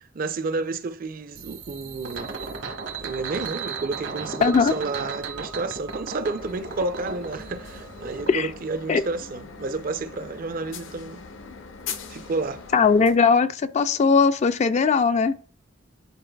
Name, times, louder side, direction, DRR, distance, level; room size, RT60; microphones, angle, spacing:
voice 1, 0.1-2.3 3.0-11.2 12.1-12.6, right 3 dB, 45° right, 0.5 m, -30 dB
sound 1, 1.3-8.3, right 4 dB, 65° right, 1.1 m, -35 dB
voice 2, 4.4-4.7 8.3-8.5 8.9-9.0 12.7-15.4, left 5 dB, 35° left, 0.3 m, -19 dB
sound 2, 6.4-13.1, left 5 dB, 70° left, 0.7 m, -41 dB
10.0 x 4.5 x 2.2 m
head